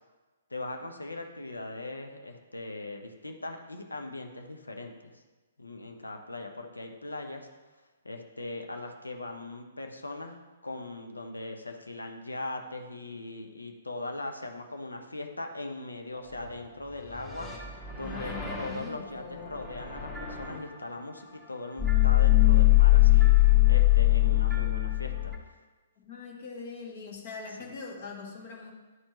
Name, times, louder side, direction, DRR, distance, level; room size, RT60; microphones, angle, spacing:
voice 1, 0.5-5.1 5.6-7.5 8.0-10.4 10.6-17.5 17.9-25.3 27.6-27.7, left 2 dB, 80° left, 4 dB, 0.9 m, -40 dB
sound 1, 16.3-16.6 16.8-20.6 21.8-25.3, left 16 dB, 15° left, 1.3 m, -23 dB
voice 2, 18.0-19.6 26.0-28.7, left 5 dB, 50° left, 0 dB, 1.6 m, -42 dB
11.0 x 4.4 x 3.0 m, 1.2 s
figure-of-eight pair, 120°, 0 cm